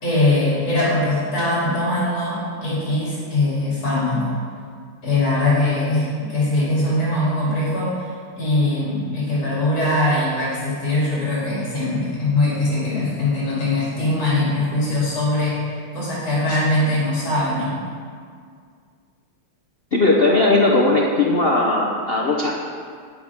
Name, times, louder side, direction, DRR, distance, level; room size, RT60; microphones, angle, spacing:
voice 1, 0.0-4.4 5.0-15.6 15.9-17.8, left 2 dB, 40° left, -9 dB, 3.5 m, -21 dB
voice 2, 19.9-22.5, left 2 dB, 75° left, -3 dB, 0.5 m, -18 dB
11.5 x 9.7 x 3.6 m, 2.1 s
omnidirectional pair, 2.4 m